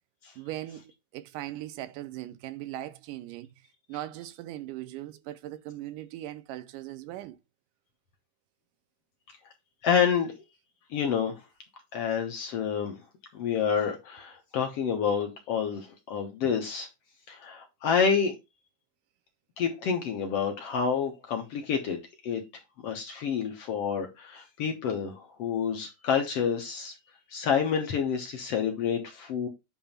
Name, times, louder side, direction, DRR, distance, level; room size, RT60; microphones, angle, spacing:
voice 1, 0.4-3.5 3.9-7.4, right 14 dB, 85° right, 2.2 m, -39 dB
voice 2, 9.8-10.3 10.9-11.4 11.9-13.0 13.3-16.9 17.3-18.3 19.6-22.0 22.2-22.4 22.8-26.9 27.3-29.5, left 7 dB, 60° left, 1.7 m, -28 dB
8.9 x 3.0 x 5.6 m
omnidirectional pair, 3.7 m